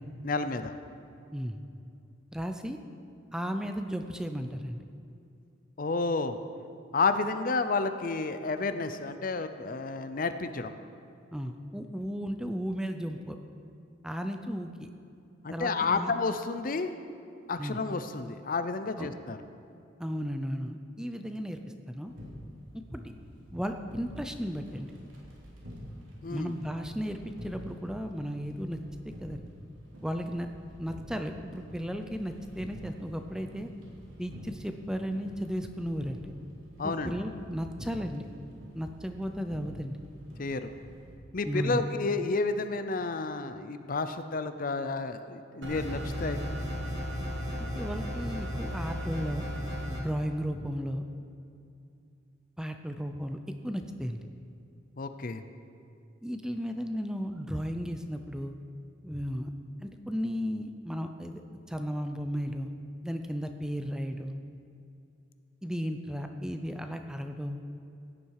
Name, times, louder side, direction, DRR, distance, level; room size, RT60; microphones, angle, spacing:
voice 1, 0.2-0.7 5.8-6.4 6.9-10.7 15.4-16.9 17.5-19.4 26.2-26.5 36.8-37.2 40.4-40.7 41.3-46.4 55.0-55.4, left 3 dB, 45° left, 10 dB, 0.6 m, -31 dB
voice 2, 2.3-2.8 3.3-4.8 11.3-13.4 14.0-14.9 15.5-16.1 17.6-17.8 19.0-19.1 20.0-21.6 21.9-22.1 22.7-23.0 23.5-24.9 26.3-28.8 29.0-29.4 30.0-30.5 30.8-33.7 34.2-36.3 36.8-38.3 38.7-40.0 41.4-41.8 47.6-49.5 49.8-51.0 52.6-54.3 56.2-58.5 59.0-59.5 59.8-61.4 61.7-62.7 63.0-64.4 65.6-67.6, equal, 5° right, 6 dB, 0.6 m, -34 dB
sound 1, 22.1-41.1, equal, 85° right, 3.2 m, -48 dB
sound 2, 45.6-50.0, equal, 65° right, 2.0 m, -34 dB
16.5 x 10.0 x 4.8 m, 2.6 s
head